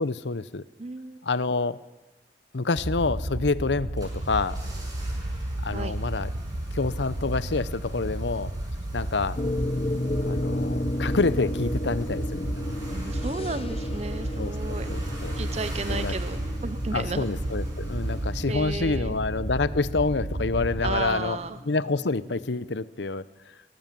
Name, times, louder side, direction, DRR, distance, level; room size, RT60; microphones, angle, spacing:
voice 1, 0.0-0.6 1.2-1.8 2.5-4.6 5.6-6.3 6.7-8.5 8.9-9.4 10.2-12.6 14.4-14.5 14.9-15.3 15.9-16.1 16.9-21.4 21.7-23.2, left 3 dB, 85° left, 17 dB, 0.8 m, -27 dB
voice 2, 0.8-1.2 5.7-6.0 12.9-14.9 15.4-17.2 18.5-19.2 20.8-21.6, right 3 dB, 35° right, 12 dB, 0.7 m, -33 dB
sound 1, 2.7-21.1, right 1 dB, 55° right, 1.3 m, -32 dB
sound 2, 3.7-19.2 19.4-19.5, right 1 dB, 20° right, 6.6 m, -47 dB
sound 3, 9.4-22.7, left 1 dB, 35° left, 0.8 m, -34 dB
23.5 x 18.5 x 7.6 m, 1.1 s
head